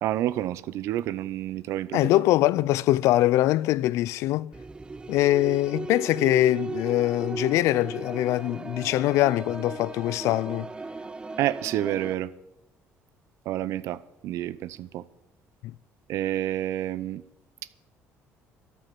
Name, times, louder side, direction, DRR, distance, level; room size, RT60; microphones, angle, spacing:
voice 1, 0.0-2.0 11.4-12.3 13.5-15.0 16.1-17.2, right 13 dB, 75° right, 0.7 m, -29 dB
voice 2, 1.9-4.5 5.1-10.7 15.6-15.7, left 15 dB, 80° left, 0.4 m, -23 dB
sound 1, 4.5-12.1, right 3 dB, 20° right, 0.5 m, -36 dB
13.0 x 9.5 x 7.6 m
cardioid pair, 90°, 5 cm